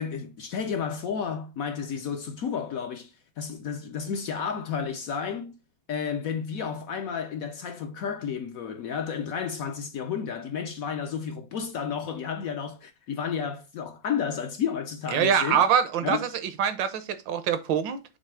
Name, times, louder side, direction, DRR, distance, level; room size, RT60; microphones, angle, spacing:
voice 1, 0.0-5.6 5.9-15.6 16.0-16.3, left 7 dB, 65° left, 0.9 m, -32 dB
voice 2, 15.1-16.3 16.6-18.0, right 8 dB, 75° right, 1.5 m, -24 dB
6.8 x 3.1 x 4.8 m
omnidirectional pair, 2.1 m